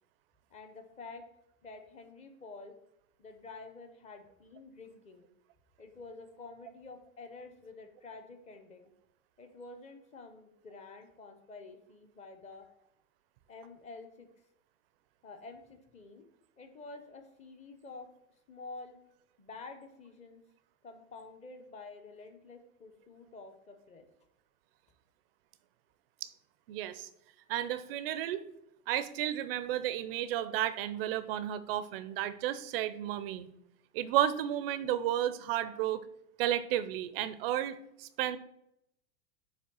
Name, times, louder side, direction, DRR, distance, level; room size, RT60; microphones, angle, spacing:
voice 1, 0.5-1.2 1.6-2.8 3.2-5.3 5.8-8.9 9.4-12.7 13.5-14.3 15.2-16.2 16.6-18.1 18.5-19.0 19.4-20.4 20.8-24.1, left 3 dB, 15° left, 6 dB, 0.6 m, -49 dB
voice 2, 26.7-27.1 27.5-28.4 28.9-33.5 33.9-36.0 36.4-38.4, right 12 dB, 40° right, 13 dB, 0.4 m, -32 dB
7.3 x 3.3 x 6.1 m, 0.79 s
hypercardioid pair, 130°, 48 cm